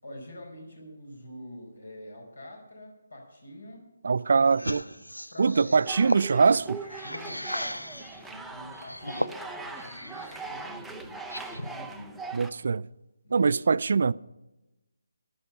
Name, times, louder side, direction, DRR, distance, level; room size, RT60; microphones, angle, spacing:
voice 1, 0.0-3.8 4.3-4.9 5.2-5.9 7.0-12.2 13.2-13.5, left 1 dB, 70° left, 4.6 m, -46 dB
voice 2, 4.0-4.8 5.4-6.8 12.3-12.9 13.3-14.1, right 5 dB, 50° right, 0.3 m, -23 dB
sound 1, 4.5-8.2 8.7-10.4 10.8-11.8, equal, 90° left, 0.5 m, -36 dB
sound 2, 5.8-12.5, right 4 dB, ahead, 0.6 m, -41 dB
14.0 x 10.5 x 5.6 m
figure-of-eight pair, 150°, 0 cm